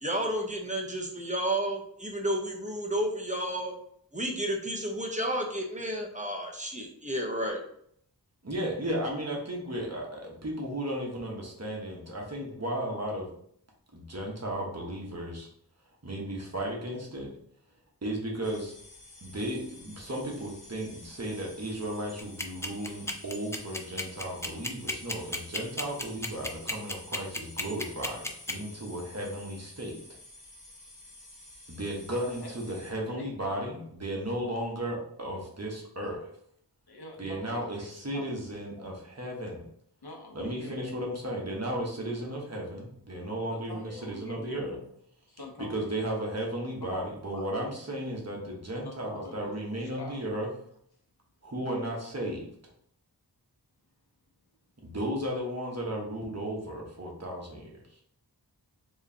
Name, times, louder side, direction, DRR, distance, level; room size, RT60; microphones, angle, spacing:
voice 1, 0.0-3.7 4.1-7.6, right 1 dB, 20° right, 0 dB, 0.8 m, -31 dB
voice 2, 8.4-13.3 13.9-15.5 16.0-17.3 18.0-18.7 19.2-30.0 31.7-36.3 37.2-39.6 40.3-44.8 45.6-50.5 51.4-52.5 54.8-57.7, right 1 dB, 40° right, -1 dB, 1.2 m, -35 dB
sound 1, 18.4-32.9, left 1 dB, 50° left, 1.2 m, -50 dB
sound 2, 22.2-28.5, left 1 dB, 5° left, 0.4 m, -32 dB
voice 3, 33.1-33.6 36.9-37.6 38.1-38.3 40.0-40.7 43.5-44.6 45.3-46.0 46.8-47.1 47.3-47.5 48.8-50.2, left 2 dB, 70° left, 1 dB, 0.9 m, -45 dB
4.6 x 3.0 x 2.8 m, 0.67 s
wide cardioid pair, 60°, 40 cm